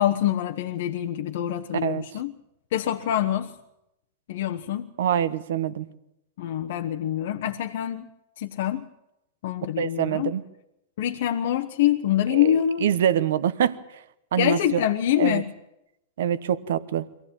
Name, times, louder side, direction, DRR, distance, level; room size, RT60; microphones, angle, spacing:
voice 1, 0.0-2.3 2.7-3.5 4.3-4.9 6.4-8.1 8.4-8.8 9.4-10.3 11.0-12.9 14.4-15.4, left 11 dB, 65° left, 3 dB, 1.1 m, -25 dB
voice 2, 1.8-2.2 5.0-5.9 9.8-10.4 12.3-13.8 14.3-14.8 15.2-15.4 16.2-17.1, right 9 dB, 75° right, 15 dB, 1.1 m, -25 dB
23.5 x 16.0 x 8.9 m, 0.89 s
hypercardioid pair, 125°, 0 cm